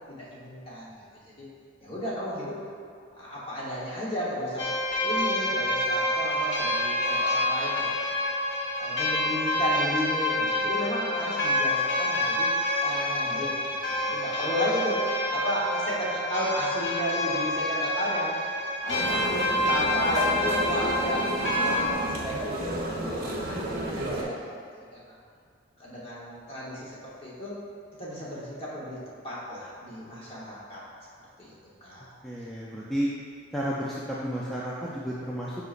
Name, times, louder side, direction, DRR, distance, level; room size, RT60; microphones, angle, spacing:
voice 1, 0.1-1.0 1.3-1.5 1.8-2.6 3.2-4.7 5.0-8.1 8.8-12.5 12.8-13.5 13.8-18.4 18.8-24.4 24.9-25.0 25.8-27.6 28.0-29.0 29.2-30.8 31.4-31.5 31.8-32.0, equal, 30° left, -7 dB, 1.2 m, -33 dB
sound 1, 4.6-21.9, left 1 dB, 65° left, 0.9 m, -28 dB
sound 2, 18.9-24.2, right 1 dB, 45° right, 0.7 m, -32 dB
voice 2, 32.2-33.1 33.5-35.6, equal, ahead, -7 dB, 0.4 m, -31 dB
7.9 x 4.7 x 2.5 m, 2.4 s
head